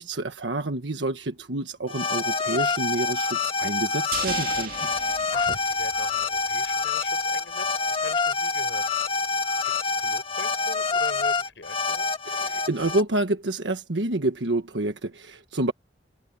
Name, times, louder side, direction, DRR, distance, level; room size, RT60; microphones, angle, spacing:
voice 1, 0.0-4.7 12.3-15.7, right 2 dB, 85° right, 1.4 m, -28 dB
sound 1, 1.9-13.0, left 4 dB, 30° left, 1.7 m, -26 dB
sound 2, 4.1-6.5 6.8-6.9, right 7 dB, 55° right, 2.3 m, -36 dB
voice 2, 5.3-9.0 9.6-12.1, left 2 dB, 90° left, 7.6 m, -41 dB
head